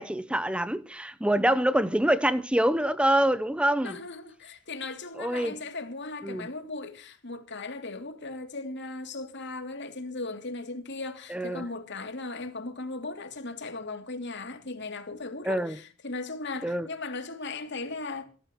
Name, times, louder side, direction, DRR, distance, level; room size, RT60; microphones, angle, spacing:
voice 1, 0.0-4.0 5.2-5.6 6.2-6.5 11.3-11.6 15.4-15.8 16.6-16.9, right 1 dB, 5° right, 0.7 m, -25 dB
voice 2, 3.8-18.3, left 3 dB, 60° left, 2.7 m, -37 dB
26.5 x 13.0 x 3.0 m
head